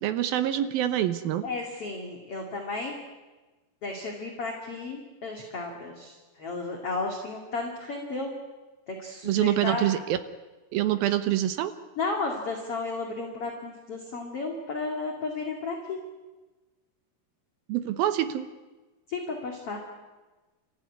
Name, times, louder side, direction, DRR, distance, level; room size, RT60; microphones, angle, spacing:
voice 1, 0.0-1.4 9.2-10.2 10.7-11.7 17.7-18.5, right 12 dB, 75° right, 10 dB, 2.3 m, -26 dB
voice 2, 1.4-2.9 3.8-8.3 8.9-9.8 12.0-16.0 19.1-19.8, left 3 dB, 40° left, 1 dB, 2.7 m, -33 dB
30.0 x 15.0 x 9.6 m, 1.2 s
omnidirectional pair, 5.2 m